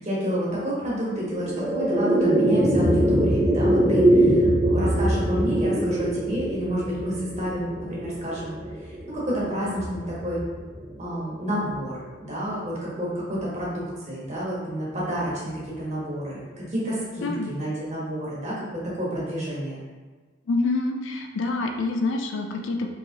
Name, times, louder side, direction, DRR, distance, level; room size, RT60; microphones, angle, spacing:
voice 1, 0.0-10.4 11.0-19.8, equal, 35° right, -6 dB, 1.1 m, -30 dB
sound 1, 1.0-11.5, right 1 dB, 15° right, 0.5 m, -23 dB
voice 2, 20.5-22.9, left 3 dB, 65° left, 3 dB, 0.4 m, -26 dB
4.3 x 3.1 x 2.8 m, 1.4 s
head